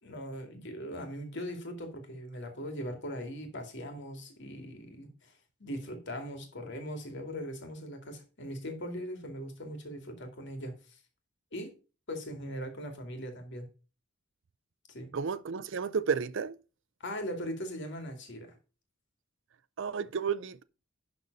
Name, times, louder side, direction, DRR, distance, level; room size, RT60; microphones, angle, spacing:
voice 1, 0.0-5.3 5.6-11.0 11.5-11.7 12.1-13.7 14.9-15.1 17.0-18.6, equal, 60° left, 2.4 m, -40 dB
voice 2, 15.1-16.6 19.8-20.6, right 6 dB, 65° right, 0.5 m, -32 dB
11.5 x 4.1 x 5.3 m
head